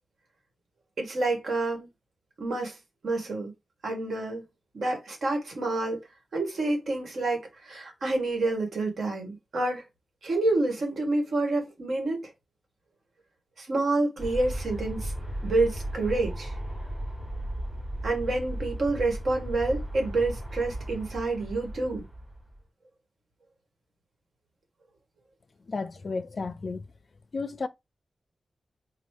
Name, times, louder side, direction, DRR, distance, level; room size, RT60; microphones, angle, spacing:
voice 1, 1.0-1.9 2.4-2.7 3.0-3.5 3.8-4.4 4.7-6.0 6.3-9.8 10.2-12.3 13.6-15.1 15.4-16.5 18.0-22.0, right 2 dB, 65° right, 1.7 m, -28 dB
Aircraft, 14.2-22.6, right 1 dB, 25° right, 2.7 m, -36 dB
voice 2, 25.7-26.9 27.3-27.7, left 4 dB, 45° left, 0.4 m, -32 dB
4.2 x 2.4 x 4.7 m
wide cardioid pair, 135°, 0 cm